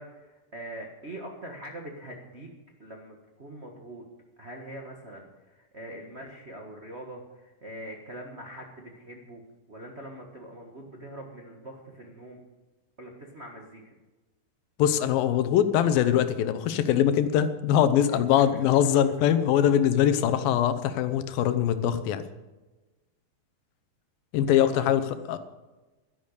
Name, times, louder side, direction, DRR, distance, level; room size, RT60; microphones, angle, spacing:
voice 1, 0.0-2.5 2.8-4.0 4.4-9.4 9.7-12.4 13.0-13.9 18.3-18.6 24.5-24.9, right 1 dB, 60° right, 0 dB, 0.6 m, -43 dB
voice 2, 14.8-22.2 24.3-25.4, left 10 dB, 85° left, 11 dB, 2.7 m, -23 dB
12.0 x 11.0 x 6.7 m, 1.2 s
omnidirectional pair, 4.1 m